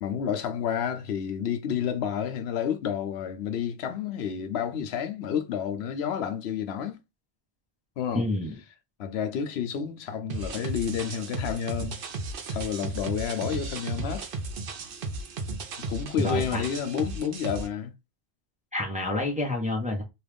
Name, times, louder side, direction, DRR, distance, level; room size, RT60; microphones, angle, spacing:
voice 1, 0.0-7.0 8.0-8.3 9.0-12.0 12.5-14.3 15.9-17.9, left 8 dB, 80° left, 0.8 m, -30 dB
voice 2, 8.1-8.6 16.2-16.6 18.7-20.0, left 2 dB, 10° right, 0.7 m, -28 dB
sound 1, 10.3-17.7, right 3 dB, 60° right, 0.8 m, -35 dB
2.9 x 2.4 x 3.4 m
omnidirectional pair, 1.1 m